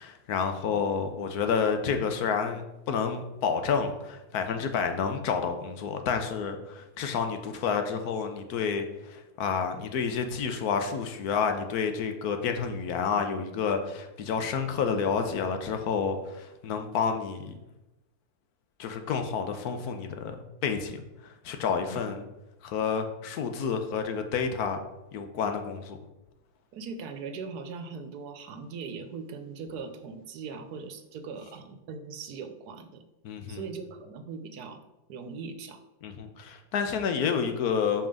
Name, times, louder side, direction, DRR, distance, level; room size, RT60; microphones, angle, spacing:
voice 1, 0.0-17.5 18.8-21.0 21.4-22.2 22.6-24.8 25.1-26.0 33.2-33.7 36.0-38.1, left 6 dB, 80° left, 6 dB, 1.3 m, -29 dB
voice 2, 26.7-33.0 33.5-34.8 35.1-35.8, right 5 dB, 85° right, 8 dB, 1.3 m, -40 dB
5.6 x 5.3 x 5.1 m, 0.97 s
omnidirectional pair, 1.6 m